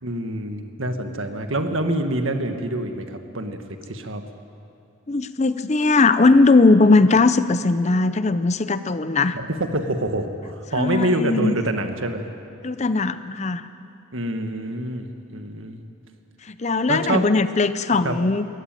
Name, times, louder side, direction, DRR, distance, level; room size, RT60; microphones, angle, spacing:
voice 1, 0.0-4.2 9.3-12.3 14.1-15.8 16.9-17.2 18.0-18.1, right 1 dB, 70° right, 6 dB, 1.6 m, -26 dB
voice 2, 5.1-9.4 10.7-11.5 12.6-13.7 16.4-18.6, left 3 dB, 30° left, 13 dB, 0.6 m, -19 dB
22.5 x 15.0 x 9.2 m, 2.6 s
head